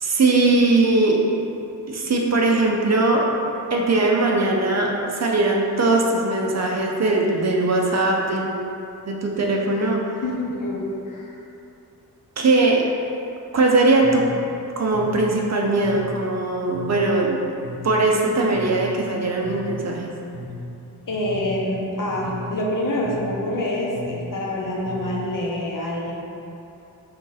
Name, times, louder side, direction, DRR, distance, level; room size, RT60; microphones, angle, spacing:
voice 1, 0.0-1.2 1.9-3.3 3.7-8.7 9.1-10.0 12.4-12.9 13.5-14.3 14.8-17.4 17.8-20.1, right 2 dB, 45° right, -1 dB, 0.5 m, -20 dB
voice 2, 10.2-11.4 21.1-26.1, left 1 dB, 55° left, -3 dB, 0.8 m, -26 dB
sound 1, 13.9-25.5, left 1 dB, 80° left, 1.2 m, -37 dB
3.8 x 2.6 x 3.9 m, 2.8 s
cardioid pair, 55°, 39 cm